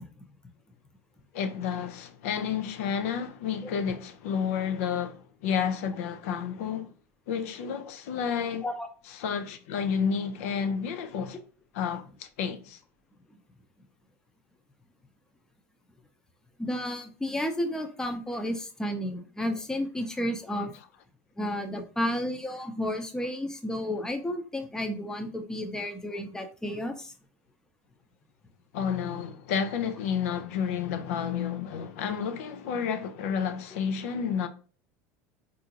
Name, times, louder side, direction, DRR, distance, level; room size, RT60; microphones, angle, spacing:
voice 1, 1.3-6.9 7.3-8.6 9.2-11.4 11.7-12.8 28.7-34.5, left 7 dB, 80° left, 0.4 m, -30 dB
voice 2, 16.6-20.7 21.4-27.1, left 1 dB, 10° left, 0.6 m, -32 dB
3.6 x 2.6 x 2.7 m
supercardioid pair, 105°, 8 cm